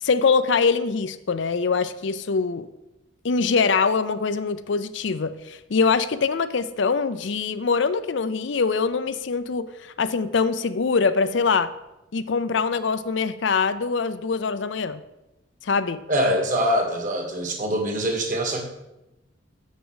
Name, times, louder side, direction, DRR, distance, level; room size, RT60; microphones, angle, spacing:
voice 1, 0.0-2.7 3.2-11.7 12.1-15.0 15.6-16.0, left 5 dB, 65° left, 13 dB, 0.5 m, -23 dB
voice 2, 16.1-18.6, equal, 40° right, 2 dB, 2.1 m, -24 dB
7.5 x 6.8 x 7.9 m, 0.96 s
head